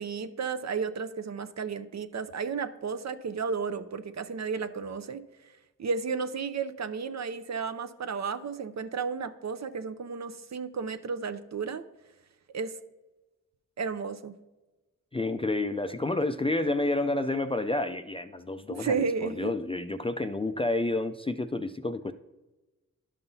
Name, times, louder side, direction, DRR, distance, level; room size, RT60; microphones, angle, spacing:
voice 1, 0.0-5.2 5.8-11.8 12.5-12.7 13.8-14.3 18.8-19.5, right 5 dB, 55° right, 10 dB, 0.5 m, -33 dB
voice 2, 15.1-22.1, left 2 dB, 15° left, 8 dB, 0.3 m, -29 dB
11.5 x 5.4 x 2.7 m, 1.1 s
cardioid pair, 55°, 33 cm